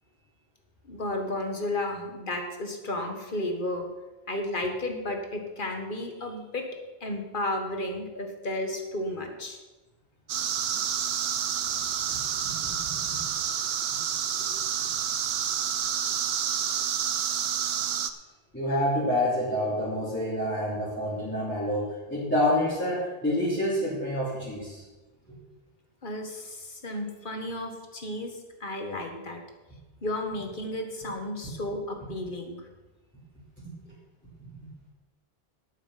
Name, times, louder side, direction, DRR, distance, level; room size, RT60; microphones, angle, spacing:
voice 1, 0.8-3.9 4.3-6.6 7.0-9.6 26.0-29.4 30.0-32.6, left 1 dB, 55° left, 4 dB, 1.8 m, -33 dB
sound 1, 10.3-18.1, right 8 dB, 75° right, 0.9 m, -29 dB
voice 2, 12.1-12.6 12.8-13.2 14.4-14.5 18.5-24.8 33.8-33.9 34.4-34.5, left 1 dB, 10° left, -10 dB, 3.2 m, -28 dB
11.5 x 8.4 x 5.8 m, 1.2 s
omnidirectional pair, 1.0 m